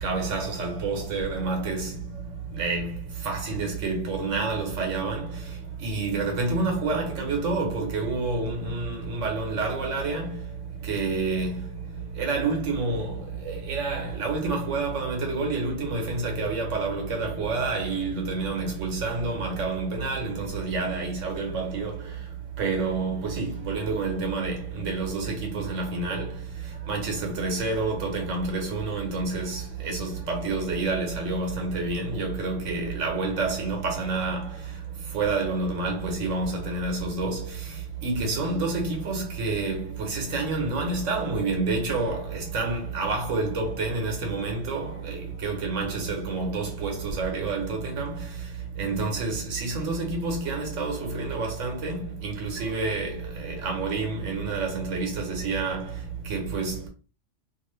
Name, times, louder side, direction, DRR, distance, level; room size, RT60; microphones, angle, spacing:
voice 1, 0.0-1.9 2.6-2.9 3.2-5.3 5.8-10.3 10.9-11.6 12.2-13.2 13.5-21.9 22.6-26.3 26.9-34.5 35.1-37.4 38.0-48.2 48.8-55.8 56.3-56.9, right 3 dB, 80° right, 1.3 m, -28 dB
2.7 x 2.4 x 3.2 m
omnidirectional pair, 1.3 m